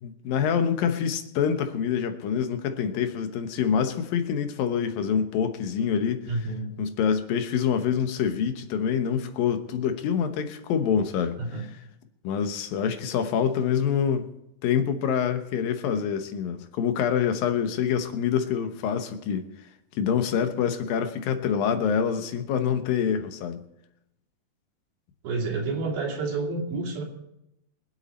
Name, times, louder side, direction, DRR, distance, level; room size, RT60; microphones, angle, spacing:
voice 1, 0.0-6.3 6.8-11.4 12.2-14.3 14.6-19.5 20.0-23.6, left 7 dB, 80° left, 2.9 m, -26 dB
voice 2, 6.3-6.7 11.4-11.6 25.2-27.0, right 3 dB, 90° right, 4.7 m, -29 dB
24.5 x 8.4 x 4.3 m
omnidirectional pair, 4.1 m